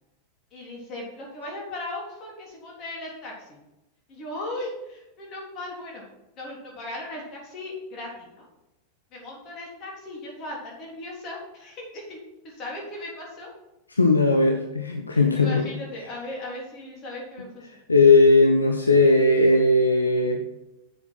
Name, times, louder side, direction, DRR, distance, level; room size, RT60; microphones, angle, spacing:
voice 1, 0.5-3.6 4.1-6.0 6.4-8.4 9.1-13.5 15.1-17.7, left 1 dB, 35° left, -3 dB, 3.6 m, -37 dB
voice 2, 13.9-15.7 17.9-20.4, left 2 dB, 80° left, 3 dB, 0.9 m, -18 dB
7.8 x 7.6 x 4.6 m, 0.94 s
figure-of-eight pair, 90°, 0 cm